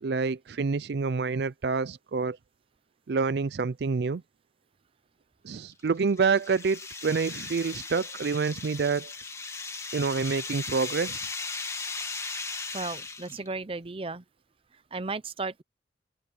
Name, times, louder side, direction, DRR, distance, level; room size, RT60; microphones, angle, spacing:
voice 1, 0.0-2.4 3.1-4.2 5.4-9.1 9.9-11.3, right 5 dB, 65° right, 0.4 m, -27 dB
sound 1, 5.7-13.5, left 4 dB, 15° left, 1.8 m, -37 dB
voice 2, 12.7-14.2 14.9-15.6, right 3 dB, 30° right, 0.7 m, -34 dB
open air
head